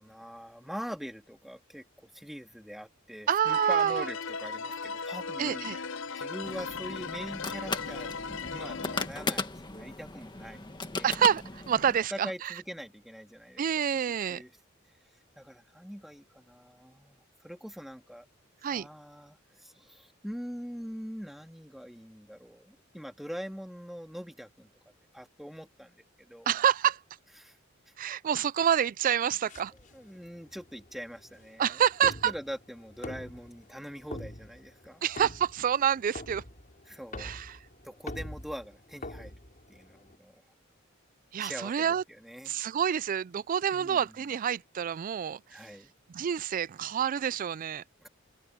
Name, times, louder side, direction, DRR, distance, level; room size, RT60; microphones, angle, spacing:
voice 1, 0.0-5.7 6.2-8.1 8.5-11.2 12.1-13.6 14.3-14.5 15.4-18.3 18.7-24.7 25.1-26.5 27.4-27.6 27.9-28.0 29.9-35.0 36.9-37.3 37.8-39.4 39.7-40.4 41.4-42.6 43.7-44.1 45.5-45.9 48.0-48.1, equal, ahead, 2.0 m, -43 dB
voice 2, 3.3-4.1 5.4-5.8 11.0-12.5 13.6-14.4 18.6-18.9 26.5-27.0 28.0-29.7 31.6-32.3 35.0-36.4 37.2-37.6 41.3-42.0 42.5-45.6 46.1-47.8, right 8 dB, 40° right, 0.3 m, -28 dB
sound 1, 3.5-9.1, left 5 dB, 65° left, 0.7 m, -37 dB
sound 2, 6.4-12.0, left 3 dB, 25° left, 1.9 m, -37 dB
sound 3, 29.5-40.2, left 1 dB, 40° left, 5.0 m, -45 dB
head